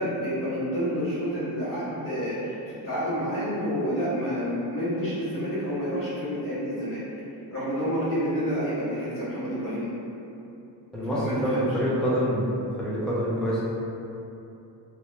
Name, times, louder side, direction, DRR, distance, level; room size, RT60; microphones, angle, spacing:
voice 1, 0.0-7.0 7.5-9.9 11.1-11.7, equal, 30° left, -13 dB, 1.4 m, -29 dB
voice 2, 10.9-12.5 12.8-13.6, equal, ahead, -7 dB, 0.3 m, -26 dB
2.9 x 2.8 x 3.2 m, 2.9 s
cardioid pair, 170°, 44 cm